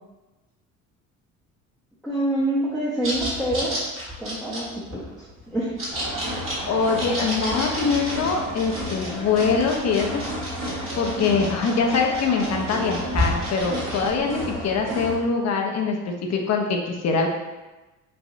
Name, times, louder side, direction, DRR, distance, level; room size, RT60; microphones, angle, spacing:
voice 1, 2.0-3.7 4.2-5.3 5.5-5.7, right 1 dB, ahead, -8 dB, 0.7 m, -26 dB
sound 1, 3.0-14.1, equal, 35° right, 1.4 m, -32 dB
sound 2, 5.9-15.2, equal, 55° right, 1.4 m, -32 dB
voice 2, 6.7-10.2 11.0-17.3, left 5 dB, 45° left, 2 dB, 0.6 m, -23 dB
3.1 x 2.6 x 2.5 m, 1.1 s
hypercardioid pair, 65°, 37 cm